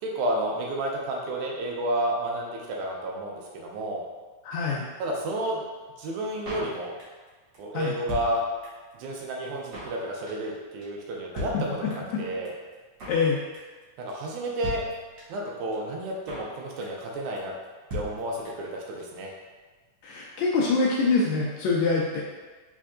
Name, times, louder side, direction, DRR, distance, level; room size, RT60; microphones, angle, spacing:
voice 1, 0.0-4.0 5.0-5.6 6.0-6.9 7.6-8.4 9.0-11.5 11.8-12.5 14.0-14.8 15.3-17.5 17.9-19.3, right 1 dB, 85° right, -1 dB, 2.1 m, -31 dB
voice 2, 4.4-4.9 7.7-7.9 11.5-11.6 13.1-13.4 20.0-22.2, left 4 dB, 80° left, -3 dB, 1.6 m, -24 dB
Drum kit, 6.5-7.3 7.5-7.6 7.8-8.9 9.2-9.3 9.5-10.0 10.3-10.6 10.8-10.9 11.1-11.2 11.4-12.2 12.5-12.6 12.7-13.3 13.5-13.8 14.1-14.2 14.4-14.5 14.6-15.5 15.7-15.8 16.0-16.6 16.8-17.1 17.4-17.5 17.6-17.7 17.9-18.7 19.0-19.1 19.3-19.4, left 2 dB, 70° right, 0.9 m, -37 dB
4.4 x 4.3 x 2.4 m, 1.3 s
omnidirectional pair, 3.5 m